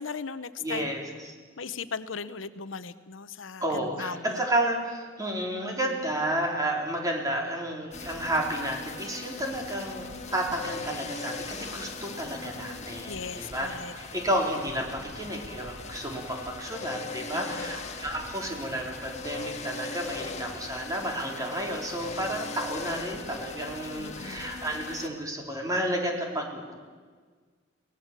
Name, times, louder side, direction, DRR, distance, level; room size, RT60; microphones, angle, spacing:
voice 1, 0.0-0.9 1.6-4.4 13.1-13.9 17.3-17.7 24.0-24.5, left 5 dB, 80° left, 13 dB, 0.9 m, -38 dB
voice 2, 0.6-1.3 3.6-26.7, right 1 dB, 20° right, 0 dB, 3.8 m, -31 dB
sound 1, 7.9-25.1, left 3 dB, 35° left, 1.8 m, -39 dB
23.5 x 18.5 x 7.5 m, 1.5 s
head